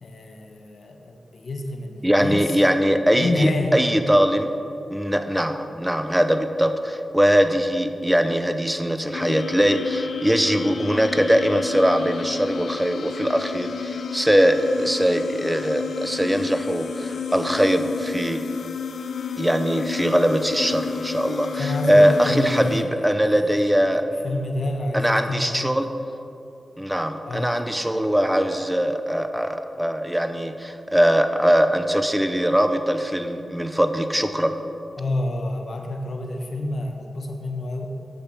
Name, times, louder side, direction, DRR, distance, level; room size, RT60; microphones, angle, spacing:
voice 1, 0.0-2.6 3.1-3.7 21.6-23.6 24.2-25.9 27.2-27.8 35.0-37.9, left 2 dB, 60° left, 3 dB, 1.2 m, -28 dB
voice 2, 2.0-4.5 4.9-18.4 19.4-24.1 24.9-25.9 26.8-34.6, equal, 5° right, 8 dB, 0.8 m, -21 dB
sound 1, 9.1-22.8, left 6 dB, 80° left, 0.6 m, -32 dB
7.9 x 6.8 x 7.1 m, 2.7 s
cardioid pair, 50°, 0 cm